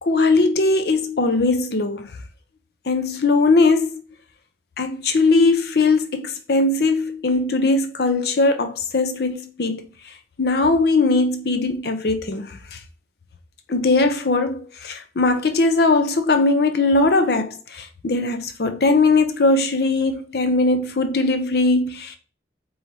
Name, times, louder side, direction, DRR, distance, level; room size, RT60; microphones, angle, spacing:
voice 1, 0.0-2.1 2.9-4.0 4.8-12.8 13.7-22.2, left 3 dB, 60° left, 0.6 m, -20 dB
4.6 x 3.1 x 2.8 m
head